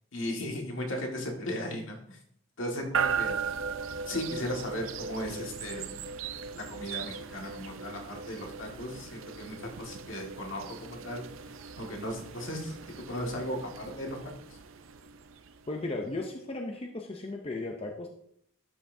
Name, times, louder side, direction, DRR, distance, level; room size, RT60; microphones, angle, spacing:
voice 1, 0.1-2.2 2.6-3.4 4.1-6.0 6.6-11.3 11.8-12.8 13.1-14.2, left 1 dB, 70° left, 0 dB, 1.8 m, -36 dB
sound 1, 2.9-15.9, right 6 dB, 70° right, 0.5 m, -38 dB
voice 2, 15.7-18.1, left 2 dB, 30° left, 2 dB, 0.6 m, -35 dB
11.5 x 5.6 x 2.7 m, 0.70 s
head